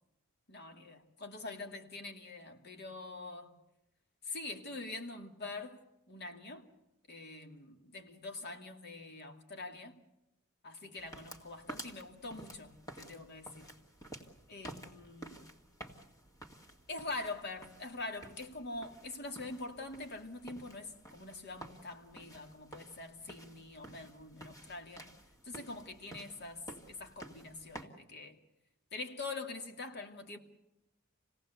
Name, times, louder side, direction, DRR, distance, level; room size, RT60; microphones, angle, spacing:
voice 1, 0.5-3.5 4.2-6.7 7.1-9.9 10.6-13.7 14.5-15.4 16.9-25.1 25.4-28.4 28.9-30.4, left 3 dB, 55° left, 2.4 m, -44 dB
sound 1, 11.0-27.9, right 1 dB, 15° left, 2.2 m, -52 dB
28.0 x 18.0 x 8.1 m
head